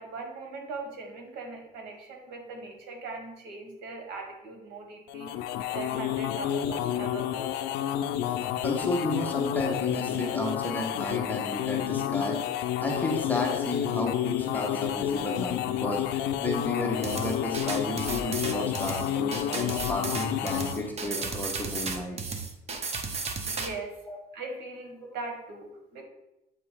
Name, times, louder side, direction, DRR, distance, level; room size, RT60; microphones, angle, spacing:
voice 1, 0.0-5.4 5.7-7.5 23.4-24.0 24.3-26.0, right 3 dB, 75° right, 3 dB, 1.6 m, -40 dB
sound 1, 5.1-20.9, left 11 dB, 85° left, 0.4 m, -30 dB
voice 2, 8.6-12.4 12.8-22.2 24.1-24.2 25.0-25.1, left 1 dB, 10° left, 0 dB, 1.1 m, -33 dB
sound 2, 17.0-23.7, right 4 dB, 40° right, 0.9 m, -34 dB
8.3 x 2.9 x 5.0 m, 0.91 s
cardioid pair, 110°, 17 cm